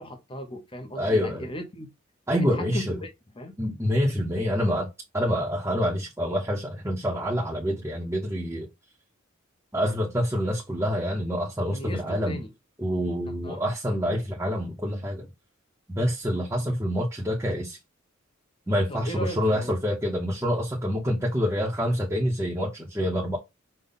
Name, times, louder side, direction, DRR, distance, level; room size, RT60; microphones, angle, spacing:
voice 1, 0.0-1.9 2.5-3.1 3.4-3.6 11.7-12.5 13.4-13.6 18.9-19.8, equal, 25° left, 0.8 m, -37 dB
voice 2, 1.0-1.5 2.3-3.0 3.6-4.9 5.1-8.7 9.7-12.4 12.8-15.3 15.9-17.8 18.7-23.4, equal, 15° right, 0.9 m, -27 dB
5.5 x 2.3 x 3.9 m
head